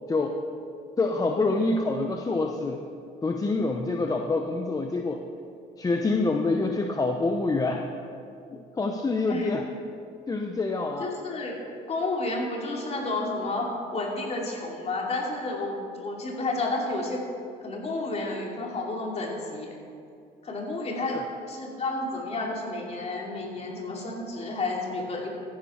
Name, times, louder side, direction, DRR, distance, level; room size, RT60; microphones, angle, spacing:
voice 1, 1.0-2.8 3.2-5.2 5.8-7.8 8.5-9.6 10.3-11.1 21.1-21.2, left 3 dB, 20° left, 3 dB, 0.7 m, -26 dB
voice 2, 11.0-11.6 11.9-17.2 17.6-19.8 20.4-21.2 21.5-25.3, left 2 dB, 40° left, -1 dB, 2.6 m, -31 dB
14.0 x 10.5 x 4.3 m, 2.6 s
cardioid pair, 110°, 17 cm